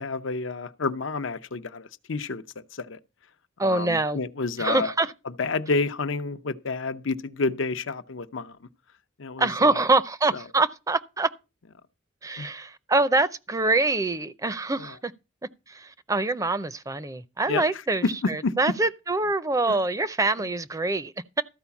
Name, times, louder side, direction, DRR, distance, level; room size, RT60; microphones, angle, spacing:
voice 1, 0.0-3.0 3.6-4.9 5.2-8.7 9.2-9.8 10.3-10.4 12.4-12.5 14.8-15.0 17.5-18.5 19.7-19.8, left 3 dB, 80° left, 0.7 m, -30 dB
voice 2, 3.6-4.2 4.6-5.1 9.4-11.3 12.2-15.1 15.7-21.4, right 2 dB, 15° right, 0.5 m, -25 dB
14.0 x 4.8 x 7.0 m
head